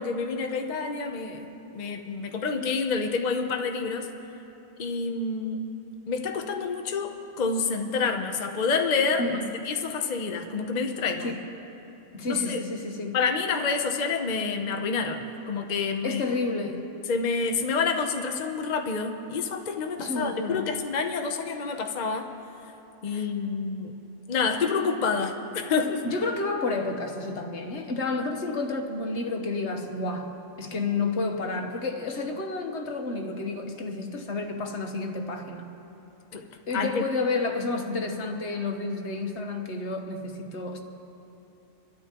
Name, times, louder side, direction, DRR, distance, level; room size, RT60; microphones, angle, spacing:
voice 1, 0.0-1.5 1.7-4.1 4.8-5.6 6.1-9.4 9.6-11.3 12.3-12.6 13.1-16.2 17.1-22.3 23.0-23.9 24.3-26.0 36.3-36.4 36.7-37.0, left 4 dB, 40° left, 4 dB, 0.8 m, -28 dB
voice 2, 12.1-13.2 16.0-16.9 20.0-20.7 23.1-23.3 26.0-35.7 36.7-40.8, left 3 dB, 65° left, 4 dB, 1.4 m, -30 dB
26.5 x 12.5 x 3.0 m, 2.9 s
omnidirectional pair, 1.3 m